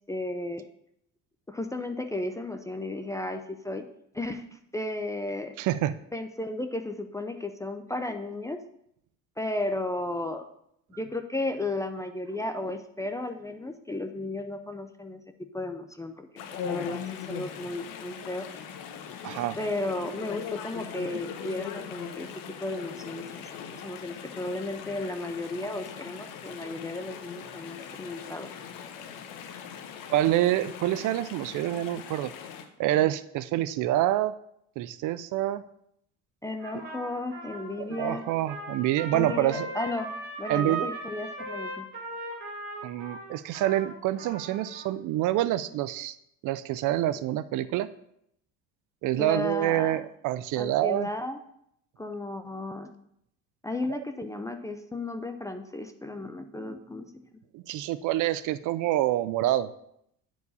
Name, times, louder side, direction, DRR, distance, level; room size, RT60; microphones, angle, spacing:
voice 1, 0.1-0.6 1.5-3.8 4.1-5.5 6.1-8.6 9.4-10.4 10.9-15.2 15.5-16.3 16.6-17.0 17.3-18.4 19.6-22.3 22.6-23.3 23.7-28.5 36.4-38.3 39.1-40.1 40.4-41.9 49.2-50.0 50.6-51.4 52.0-52.9 53.6-57.4, left 2 dB, 10° left, 7 dB, 0.4 m, -34 dB
voice 2, 5.6-5.9 19.2-19.6 30.1-32.3 32.8-34.3 34.8-35.6 37.9-39.7 40.5-40.9 42.8-46.1 46.4-47.9 49.0-51.1 53.9-54.0 57.5-59.7, right 14 dB, 55° right, 15 dB, 0.5 m, -27 dB
Chatter / Stream, 16.4-32.6, left 8 dB, 60° left, 1.0 m, -40 dB
Trumpet, 36.6-44.9, right 3 dB, 30° right, 2.8 m, -38 dB
9.7 x 4.7 x 4.1 m, 0.73 s
cardioid pair, 125°, 37 cm